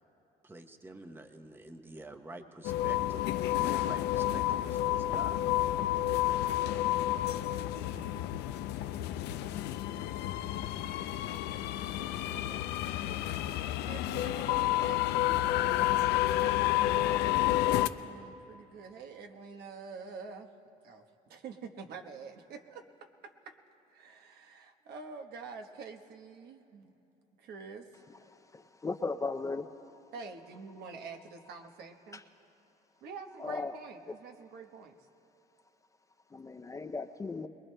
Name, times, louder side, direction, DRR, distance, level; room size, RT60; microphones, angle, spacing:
voice 1, 0.4-3.2 3.6-5.5, right 2 dB, 10° right, 6 dB, 0.8 m, -47 dB
sound 1, 2.6-17.9, left 14 dB, 85° left, 0.5 m, -30 dB
voice 2, 12.3-12.7 13.4-16.0 17.4-20.5 20.8-23.5 23.9-26.9 27.4-28.0 30.1-32.2 33.0-35.0, right 5 dB, 70° right, 4 dB, 1.1 m, -47 dB
voice 3, 28.3-29.7 32.1-32.2 33.4-33.7 36.3-37.5, left 3 dB, 20° left, 8 dB, 0.5 m, -37 dB
23.5 x 21.0 x 2.2 m, 3.0 s
cardioid pair, 110°, 17 cm